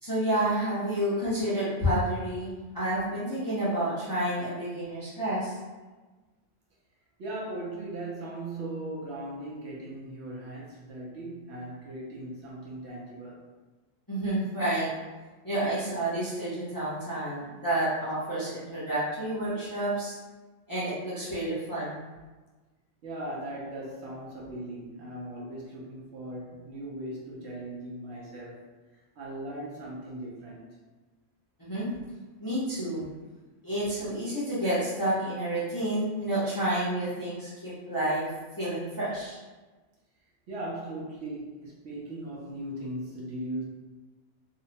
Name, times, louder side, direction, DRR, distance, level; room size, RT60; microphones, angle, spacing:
voice 1, 0.0-5.6 14.1-14.9 15.4-20.1 20.7-22.0 31.6-31.9 32.4-33.1 33.6-38.3 38.6-39.4, right 1 dB, 20° left, -11 dB, 0.6 m, -29 dB
voice 2, 7.2-13.4 23.0-28.7 29.2-30.7 40.5-43.6, right 1 dB, 65° right, -4 dB, 0.8 m, -38 dB
2.7 x 2.1 x 2.8 m, 1.2 s
omnidirectional pair, 1.3 m